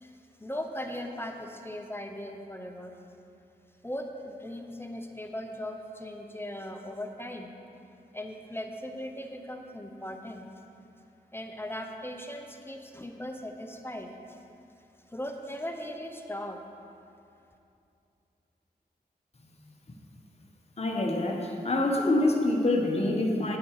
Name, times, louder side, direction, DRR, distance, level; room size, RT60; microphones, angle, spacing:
voice 1, 0.0-2.9 3.8-7.5 8.1-10.6 11.3-14.4 15.1-16.6, left 1 dB, 15° left, 4 dB, 0.9 m, -38 dB
voice 2, 20.8-23.6, left 2 dB, 40° left, 0 dB, 1.4 m, -26 dB
9.4 x 9.3 x 4.9 m, 2.6 s
cardioid pair, 55°, 17 cm